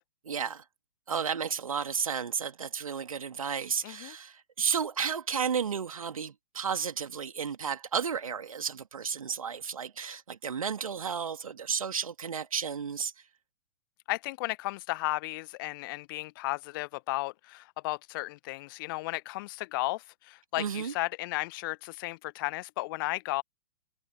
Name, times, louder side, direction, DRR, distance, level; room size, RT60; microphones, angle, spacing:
voice 1, 0.3-0.6 1.1-13.1 20.6-20.9, right 6 dB, 65° right, 2.2 m, -32 dB
voice 2, 3.8-4.1 14.1-23.4, left 21 dB, 35° left, 0.8 m, -34 dB
figure-of-eight pair, 110°, 19 cm